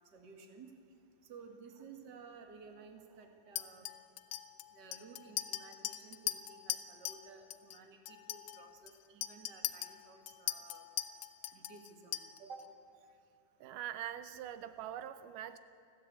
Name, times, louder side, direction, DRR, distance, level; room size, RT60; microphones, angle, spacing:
voice 1, 0.1-0.7 1.2-3.9 4.7-10.8 11.5-12.6, right 5 dB, 40° right, 4 dB, 2.1 m, -54 dB
Chink clink, 3.6-7.2 7.5-7.8 8.1-12.6, left 13 dB, 75° left, 1.9 m, -40 dB
voice 2, 13.6-15.6, right 11 dB, 85° right, 12 dB, 2.4 m, -43 dB
30.0 x 11.0 x 8.3 m, 2.7 s
omnidirectional pair, 3.7 m